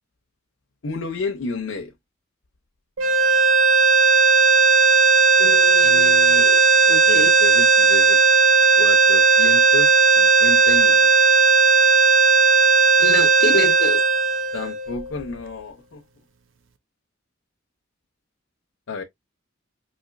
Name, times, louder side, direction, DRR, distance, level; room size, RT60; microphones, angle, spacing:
voice 1, 0.8-1.9 5.8-6.5 7.1-8.2 8.8-11.1 14.5-16.0 18.9-19.0, left 4 dB, 80° left, 0.7 m, -31 dB
sound 1, 3.0-15.2, right 5 dB, 75° right, 0.6 m, -16 dB
voice 2, 5.4-7.3 13.0-14.0, left 2 dB, 55° left, 1.0 m, -28 dB
4.2 x 2.8 x 2.4 m
head